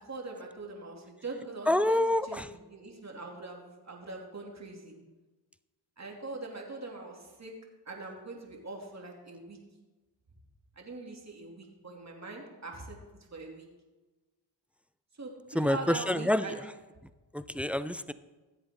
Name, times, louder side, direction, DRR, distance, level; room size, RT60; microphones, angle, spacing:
voice 1, 0.0-5.0 6.0-7.5 7.8-9.6 10.8-13.0 13.3-13.7 15.1-16.6, right 3 dB, 35° right, 0 dB, 2.8 m, -42 dB
voice 2, 1.7-2.5 15.5-16.4 17.3-18.1, left 1 dB, 5° right, 14 dB, 0.4 m, -27 dB
16.0 x 7.9 x 3.8 m, 1.2 s
supercardioid pair, 50°, 49 cm